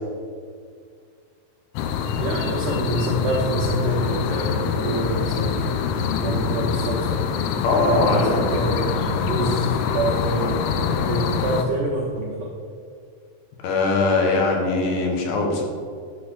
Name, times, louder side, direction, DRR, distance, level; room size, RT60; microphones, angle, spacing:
sound 1, 1.8-11.6, left 7 dB, 90° left, 2.3 m, -24 dB
voice 1, 2.2-5.6 6.2-7.2 7.8-12.5, right 2 dB, 85° right, -2 dB, 1.8 m, -26 dB
voice 2, 7.6-8.4 13.6-15.6, left 3 dB, 75° left, 0 dB, 3.5 m, -21 dB
11.5 x 4.3 x 6.6 m, 2.1 s
omnidirectional pair, 5.3 m